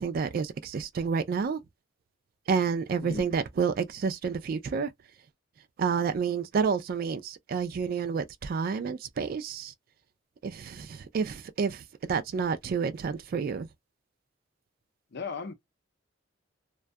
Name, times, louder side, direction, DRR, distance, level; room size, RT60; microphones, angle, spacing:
voice 1, 0.0-1.6 2.5-4.9 5.8-9.7 10.4-11.8 12.1-13.7, right 5 dB, 50° right, 0.3 m, -29 dB
voice 2, 3.0-3.3 15.1-15.5, left 4 dB, 60° left, 0.6 m, -37 dB
2.3 x 2.2 x 2.5 m
head